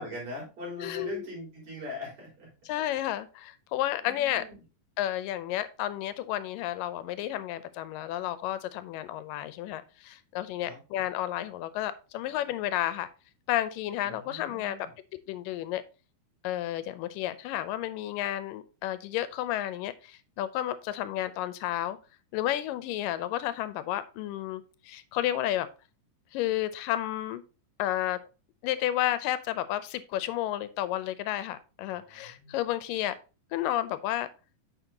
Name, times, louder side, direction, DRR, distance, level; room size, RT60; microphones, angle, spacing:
voice 1, 0.0-2.5 4.0-4.5 10.6-10.8 14.0-14.9 31.9-32.5, left 1 dB, 55° right, -4 dB, 5.1 m, -41 dB
voice 2, 0.8-1.3 2.7-4.4 5.0-13.1 13.5-14.9 15.3-15.8 16.4-22.0 22.3-25.7 26.3-27.4 27.8-28.2 28.6-33.2 33.5-34.3, left 13 dB, 85° left, 14 dB, 2.2 m, -31 dB
9.0 x 6.5 x 2.8 m, 0.32 s
omnidirectional pair, 3.9 m